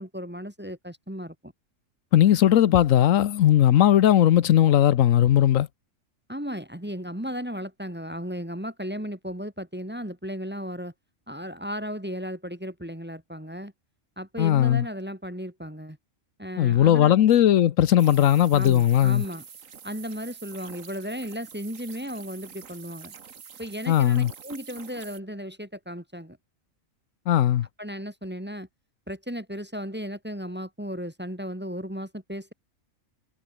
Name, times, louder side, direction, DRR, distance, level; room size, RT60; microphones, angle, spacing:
voice 1, 0.0-1.5 6.3-10.9 11.3-13.7 14.2-16.0 16.4-17.1 18.5-19.4 19.8-23.1 23.6-26.4 27.8-28.7 29.1-32.5, equal, 10° right, 1.7 m, -35 dB
voice 2, 2.1-5.7 14.4-14.8 16.6-19.2 23.9-24.3 27.3-27.7, left 11 dB, 75° left, 1.1 m, -18 dB
sound 1, 18.0-25.2, right 7 dB, 75° right, 1.8 m, -46 dB
omnidirectional pair, 1.4 m